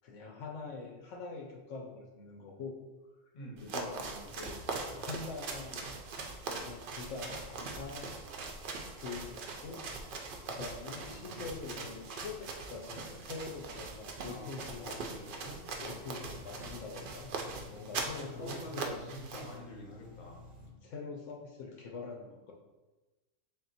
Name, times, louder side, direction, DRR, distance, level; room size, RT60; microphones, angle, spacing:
voice 1, 0.0-2.8 3.6-5.9 6.5-8.2 9.0-9.9 10.4-15.0 15.8-17.3 17.7-19.0 20.6-22.5, left 4 dB, 75° left, 0 dB, 0.9 m, -44 dB
voice 2, 3.3-3.8 10.9-11.9 14.3-15.6 18.1-20.5, equal, 40° left, -1 dB, 0.9 m, -47 dB
sound 1, 3.6-19.6, right 3 dB, 60° right, 0.6 m, -41 dB
sound 2, 9.7-10.1 10.4-10.7 11.4-11.7 12.2-20.7, left 5 dB, 10° left, 0.8 m, -54 dB
3.6 x 2.5 x 3.9 m, 1.1 s
omnidirectional pair, 1.3 m